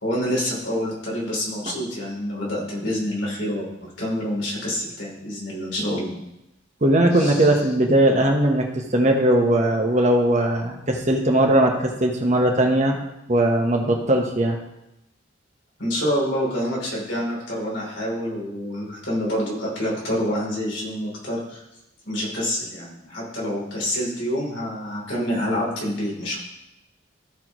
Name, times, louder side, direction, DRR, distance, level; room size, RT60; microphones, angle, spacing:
voice 1, 0.0-6.2 7.1-7.5 15.8-21.6 22.0-26.4, equal, 80° left, -4 dB, 3.4 m, -27 dB
voice 2, 6.8-13.0 13.3-14.6, right 1 dB, 40° right, 1 dB, 1.2 m, -19 dB
15.0 x 5.8 x 3.1 m, 0.90 s
head